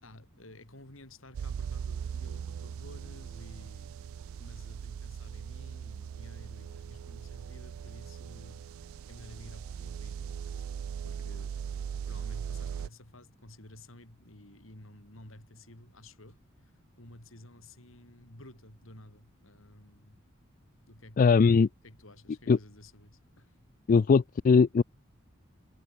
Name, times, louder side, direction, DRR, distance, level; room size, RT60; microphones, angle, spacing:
voice 1, 0.0-3.9 4.4-8.7 9.1-11.5 12.1-16.7 17.0-20.2 20.9-23.5, left 1 dB, 80° left, 4.8 m, -53 dB
sound 1, 1.3-12.9, right 7 dB, 85° right, 0.3 m, -39 dB
voice 2, 21.2-21.7 22.5-22.6 23.9-24.8, left 5 dB, 40° left, 0.3 m, -20 dB
head